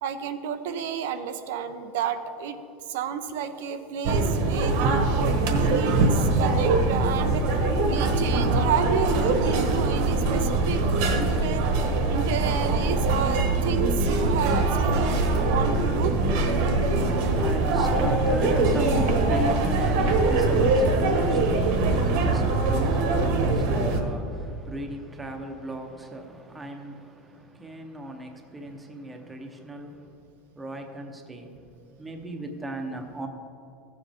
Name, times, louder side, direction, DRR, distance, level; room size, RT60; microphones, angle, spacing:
voice 1, 0.0-2.6 2.9-7.6 7.9-11.6 12.1-16.4, right 7 dB, 85° right, 9 dB, 0.6 m, -31 dB
sound 1, 4.0-24.0, right 2 dB, 60° right, 1.2 m, -23 dB
voice 2, 17.1-30.2 30.6-31.5 32.0-33.3, right 1 dB, 10° right, 3 dB, 0.8 m, -36 dB
16.0 x 7.4 x 3.5 m, 2.6 s
supercardioid pair, 160°, 0 cm